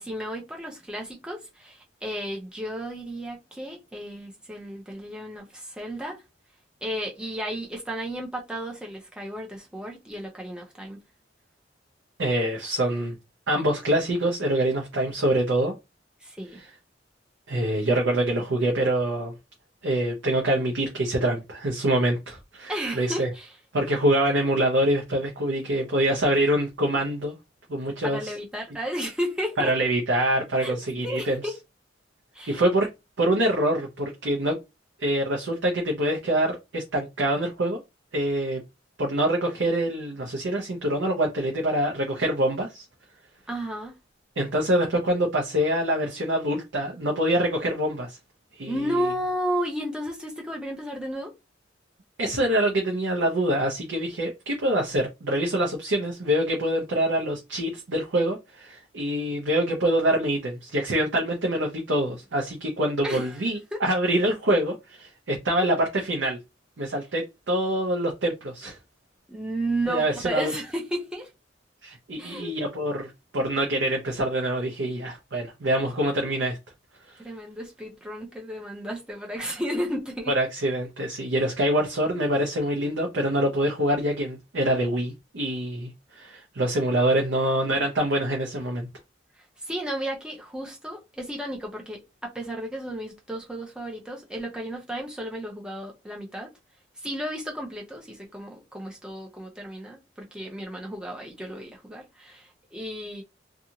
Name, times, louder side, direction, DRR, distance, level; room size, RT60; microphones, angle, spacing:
voice 1, 0.0-6.2 6.8-11.0 16.2-16.6 22.7-23.5 28.0-29.7 30.6-30.8 31.0-31.6 32.3-32.6 43.5-44.0 48.7-51.3 63.0-63.4 63.7-63.8 69.3-71.3 72.2-72.5 77.2-80.3 89.6-96.5 97.0-103.2, equal, 5° right, 0.7 m, -33 dB
voice 2, 12.2-13.1 13.5-15.7 17.5-19.3 19.8-23.3 23.7-27.4 27.7-28.2 29.6-31.4 32.5-32.9 33.2-34.6 35.0-37.8 38.1-38.6 39.0-42.8 44.4-48.2 48.6-49.0 52.2-66.4 66.8-68.8 69.9-70.5 71.8-76.6 77.1-77.2 80.3-88.9, right 1 dB, 75° right, 0.7 m, -25 dB
2.6 x 2.4 x 2.8 m
head